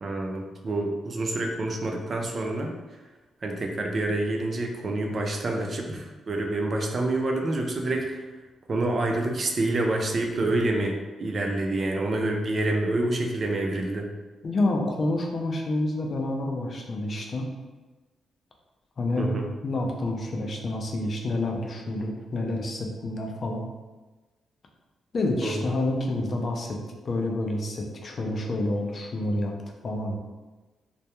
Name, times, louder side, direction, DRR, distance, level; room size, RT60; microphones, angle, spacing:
voice 1, 0.0-2.7 3.4-8.2 8.7-14.1 19.2-19.5 25.4-25.7, right 2 dB, 45° right, 1 dB, 0.3 m, -27 dB
voice 2, 14.4-17.5 19.0-19.4 19.6-23.6 25.1-26.8 27.0-29.5 29.8-30.2, left 2 dB, 50° left, 1 dB, 0.4 m, -28 dB
2.2 x 2.1 x 2.8 m, 1.2 s
cardioid pair, 90°, 0 cm